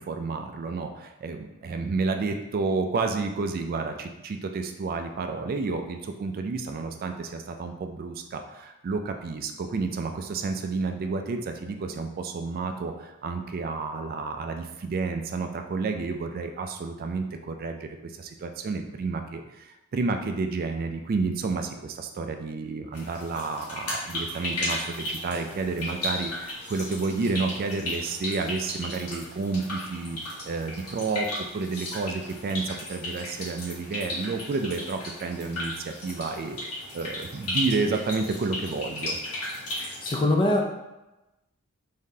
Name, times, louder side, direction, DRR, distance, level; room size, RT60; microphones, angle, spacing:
voice 1, 0.0-30.2 30.4-36.6 36.9-39.2, right 4 dB, 40° right, 5 dB, 0.3 m, -30 dB
sound 1, 22.9-40.2, left 1 dB, 90° left, 1.3 m, -35 dB
voice 2, 40.0-40.8, left 1 dB, 20° left, 2 dB, 0.4 m, -23 dB
3.7 x 3.6 x 2.7 m, 0.99 s
head